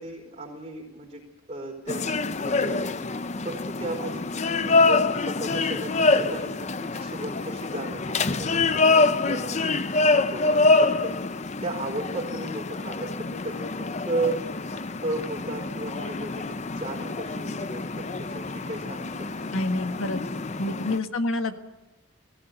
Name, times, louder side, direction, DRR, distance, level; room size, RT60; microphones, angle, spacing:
voice 1, 0.0-14.4 15.0-19.5 20.4-20.9, right 2 dB, 30° right, -1 dB, 4.3 m, -35 dB
sound 1, 1.9-21.0, left 3 dB, 35° left, 0.6 m, -26 dB
voice 2, 19.5-20.2 20.6-21.6, left 2 dB, 80° left, 8 dB, 1.6 m, -27 dB
19.0 x 17.0 x 9.3 m, 1.0 s
head